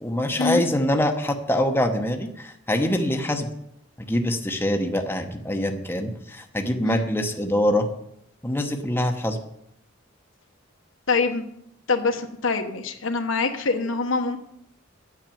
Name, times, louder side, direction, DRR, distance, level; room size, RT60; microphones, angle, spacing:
voice 1, 0.0-3.5 4.0-7.9 8.4-9.4, left 1 dB, 10° left, 4 dB, 0.9 m, -24 dB
voice 2, 11.1-11.4 11.9-14.4, left 4 dB, 70° left, 6 dB, 1.2 m, -24 dB
9.6 x 8.9 x 7.1 m, 0.77 s
head